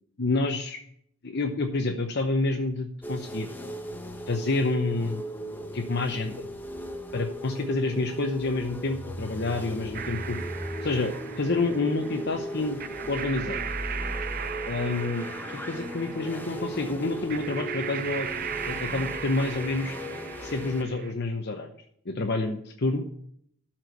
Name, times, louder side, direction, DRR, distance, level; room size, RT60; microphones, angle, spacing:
voice 1, 0.2-0.8 1.2-3.5 4.3-5.2 5.7-6.3 7.1-10.4 10.8-12.8 13.1-13.6 14.7-18.3 18.7-20.0 20.4-21.7 22.1-23.0, left 2 dB, 50° left, 4 dB, 0.8 m, -28 dB
sound 1, 3.0-20.8, equal, 10° left, 0.9 m, -37 dB
sound 2, 9.9-21.1, right 8 dB, 45° right, 0.6 m, -37 dB
12.5 x 4.5 x 8.0 m, 0.67 s
head